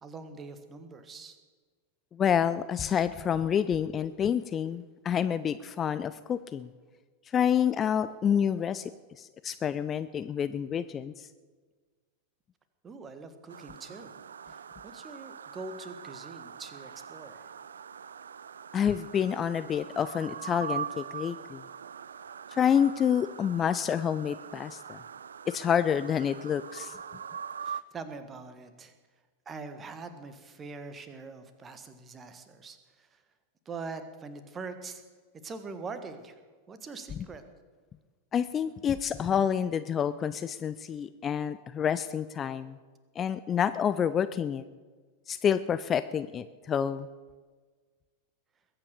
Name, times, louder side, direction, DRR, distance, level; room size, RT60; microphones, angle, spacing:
voice 1, 0.0-1.4 12.8-14.1 14.5-17.5 27.6-28.9 29.4-33.2 33.6-35.0 35.4-36.4 36.7-37.4, right 4 dB, 20° right, 10 dB, 1.6 m, -43 dB
voice 2, 2.1-6.7 7.3-8.9 9.2-11.3 18.7-21.6 22.5-25.0 25.5-27.0 38.3-42.8 43.2-44.6 45.3-47.1, left 8 dB, 25° left, 13 dB, 0.5 m, -28 dB
sound 1, 13.5-27.8, right 7 dB, 70° right, 0.4 m, -42 dB
21.5 x 8.8 x 6.8 m, 1.4 s
figure-of-eight pair, 90°, 0 cm